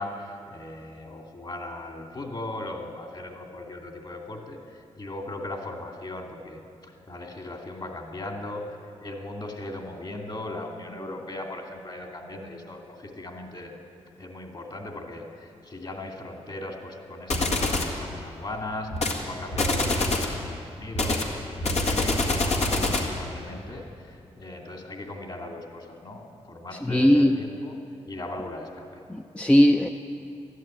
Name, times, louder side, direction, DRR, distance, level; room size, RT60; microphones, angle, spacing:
voice 1, 0.0-13.7 14.2-18.9 19.2-27.7 28.0-28.9, left 2 dB, 40° left, 2 dB, 2.5 m, -38 dB
sound 1, 17.3-17.9 18.9-19.2 19.5-20.4 20.9-23.2, left 2 dB, 70° left, 1.9 m, -25 dB
voice 2, 26.8-27.4 29.1-29.9, equal, 10° left, 5 dB, 0.6 m, -19 dB
12.5 x 11.0 x 9.1 m, 2.6 s
cardioid pair, 55°, 12 cm